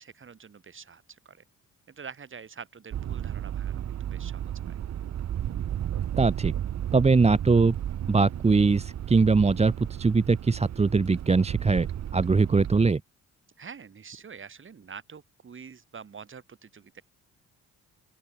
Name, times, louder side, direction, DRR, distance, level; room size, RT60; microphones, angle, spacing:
voice 1, 0.0-1.4 1.9-4.8 13.6-17.0, right 6 dB, 40° right, 6.6 m, -46 dB
sound 1, 2.9-12.9, right 10 dB, 60° right, 2.1 m, -33 dB
voice 2, 6.2-6.5 6.9-7.8 8.1-11.9 12.1-13.0, right 4 dB, 20° right, 1.1 m, -22 dB
open air
cardioid pair, 90°, 30 cm